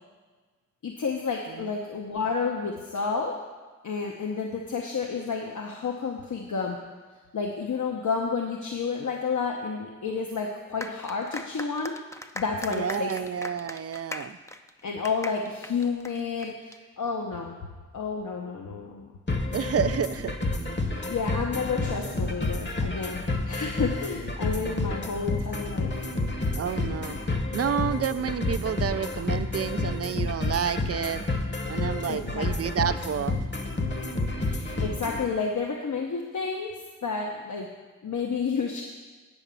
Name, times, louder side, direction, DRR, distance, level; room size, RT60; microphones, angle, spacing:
voice 1, 0.8-3.4 3.8-6.8 7.3-11.9 12.3-13.1 14.8-17.6 17.9-19.1 20.8-26.0 32.1-32.4 34.4-36.7 37.0-37.7 38.0-38.8, left 5 dB, 70° left, 0 dB, 0.9 m, -30 dB
sound 1, 10.8-16.8, left 1 dB, 10° left, 0.5 m, -40 dB
voice 2, 12.7-14.4 19.5-20.3 26.6-27.2 27.5-31.2 31.7-33.4, right 8 dB, 50° right, 12 dB, 0.5 m, -29 dB
sound 2, 19.3-35.3, left 2 dB, 35° left, 1.0 m, -30 dB
9.1 x 4.9 x 6.8 m, 1.4 s
cardioid pair, 55°, 31 cm